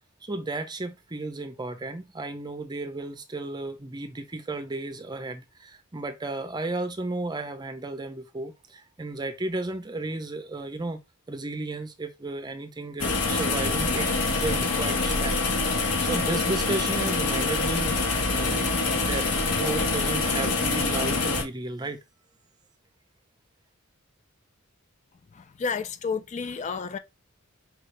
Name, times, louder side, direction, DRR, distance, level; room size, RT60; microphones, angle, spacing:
voice 1, 0.2-11.0 11.3-15.4 16.0-22.0, right 2 dB, 20° right, 0.5 m, -34 dB
sound 1, 13.0-21.4, left 3 dB, 80° left, 1.3 m, -25 dB
voice 2, 25.3-27.0, left 5 dB, 35° left, 0.4 m, -31 dB
4.6 x 2.7 x 3.2 m
head